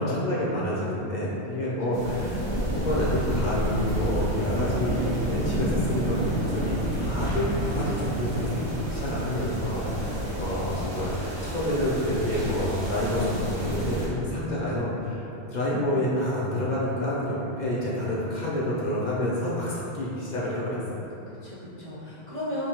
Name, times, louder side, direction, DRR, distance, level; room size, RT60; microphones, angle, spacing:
voice 1, 0.0-6.2 6.5-21.1, left 1 dB, 50° left, -7 dB, 0.7 m, -28 dB
voice 2, 1.9-2.3 21.3-22.7, equal, 40° right, -10 dB, 0.5 m, -36 dB
sound 1, 1.9-14.1, right 1 dB, 80° right, 1.1 m, -29 dB
5.1 x 2.2 x 2.9 m, 2.9 s
omnidirectional pair, 1.1 m